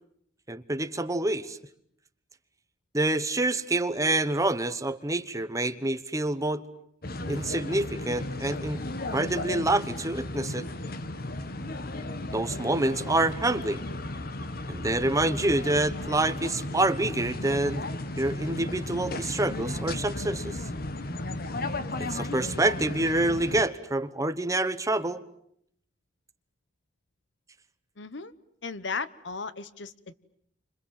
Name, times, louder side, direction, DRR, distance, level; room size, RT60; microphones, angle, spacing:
voice 1, 0.5-1.6 2.9-6.6 7.3-8.8 9.1-10.7 12.3-13.8 14.7-17.8 18.2-20.6 22.1-25.2, right 2 dB, 15° right, 11 dB, 1.1 m, -27 dB
sound 1, 7.0-23.7, left 2 dB, 55° left, 1.4 m, -35 dB
voice 2, 28.0-28.3 28.6-30.1, left 4 dB, 70° left, 15 dB, 1.1 m, -36 dB
29.5 x 26.0 x 7.7 m, 0.71 s
head